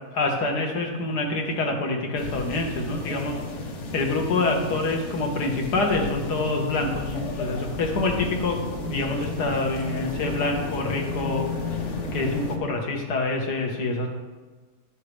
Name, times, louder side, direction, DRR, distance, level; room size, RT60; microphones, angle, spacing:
voice 1, 0.1-3.4 3.9-8.6 8.9-11.5 11.8-14.1, left 2 dB, 80° left, 1 dB, 1.8 m, -26 dB
sound 1, 2.2-12.6, left 3 dB, 50° left, 1.2 m, -32 dB
11.0 x 6.4 x 3.3 m, 1.3 s
omnidirectional pair, 1.7 m